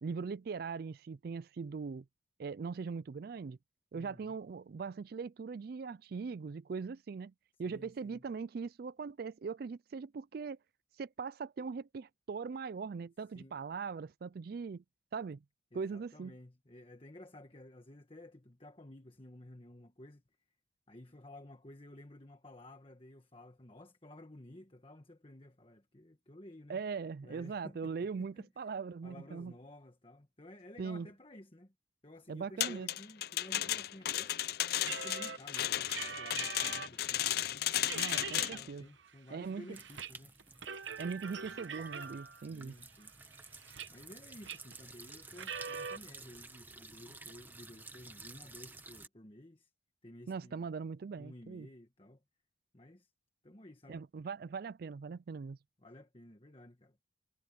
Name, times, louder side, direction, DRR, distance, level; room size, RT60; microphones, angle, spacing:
voice 1, 0.0-2.0 2.4-3.6 3.9-7.3 7.6-10.6 11.0-14.8 15.1-15.4 15.7-16.3 26.7-29.5 30.8-31.1 32.3-32.9 37.9-38.9 39.3-39.7 41.0-42.7 50.3-51.7 53.9-55.6, right 5 dB, 55° right, 0.4 m, -40 dB
voice 2, 3.9-4.4 7.6-8.2 13.3-13.6 15.7-20.2 20.9-26.8 27.2-28.7 29.0-31.7 32.0-34.4 34.8-37.7 38.2-40.4 42.5-43.1 43.9-49.7 50.0-50.7 51.2-52.2 52.7-53.1 53.4-54.0 55.8-57.0, left 1 dB, 30° left, 1.4 m, -54 dB
sound 1, 32.6-38.7, left 12 dB, 55° left, 0.5 m, -34 dB
sound 2, 34.8-37.0 37.4-37.5 37.8-38.6 39.0-40.1 40.4-42.4 43.0-44.1 44.4-44.8 45.3-46.0, right 6 dB, 80° right, 1.0 m, -43 dB
sound 3, 39.7-49.1, right 3 dB, 10° right, 1.1 m, -53 dB
head